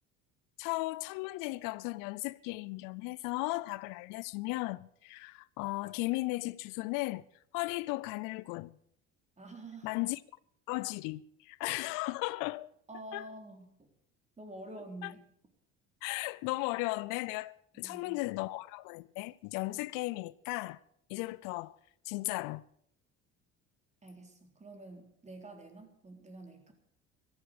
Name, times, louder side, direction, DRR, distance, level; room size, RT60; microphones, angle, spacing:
voice 1, 0.6-7.2 7.5-8.8 9.8-10.2 10.7-12.7 13.1-13.3 15.0-15.1 16.0-20.8 21.1-21.8 22.0-22.6, left 22 dB, 75° left, 0.6 m, -36 dB
voice 2, 9.4-9.9 12.9-13.9 14.4-15.2 17.7-18.2 24.0-26.7, right 2 dB, 20° right, 3.7 m, -48 dB
14.0 x 13.0 x 6.6 m
supercardioid pair, 90°, 33 cm